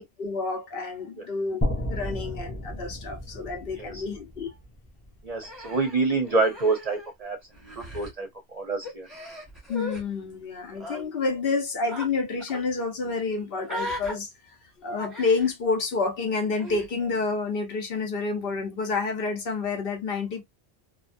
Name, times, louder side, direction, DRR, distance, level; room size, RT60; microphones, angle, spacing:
voice 1, 0.0-1.6 1.9-4.5 9.7-20.4, left 4 dB, 65° left, 0.9 m, -29 dB
sound 1, 1.6-5.6, equal, 20° left, 0.4 m, -33 dB
voice 2, 5.2-9.1, right 3 dB, 45° right, 0.6 m, -27 dB
Human voice, 5.4-7.3 7.5-8.1 8.8-10.0 10.7-11.0 11.9-12.1 12.4-12.6 13.6-14.1 15.0-15.5 16.6-16.9, left 1 dB, ahead, 1.0 m, -37 dB
2.8 x 2.2 x 2.4 m
omnidirectional pair, 1.1 m